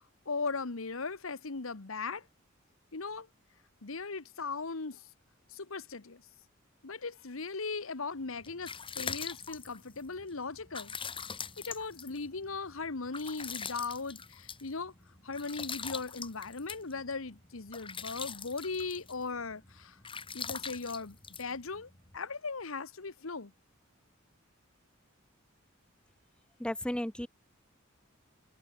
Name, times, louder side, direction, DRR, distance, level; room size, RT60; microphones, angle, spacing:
voice 1, 0.0-2.2 2.9-3.3 3.8-5.0 5.5-6.2 6.8-10.9 11.6-14.9 15.2-20.0 20.3-23.5, left 4 dB, 80° left, 1.3 m, -38 dB
sound 1, 8.2-22.2, left 6 dB, 25° left, 4.2 m, -43 dB
voice 2, 26.6-27.3, left 1 dB, 5° left, 0.6 m, -34 dB
head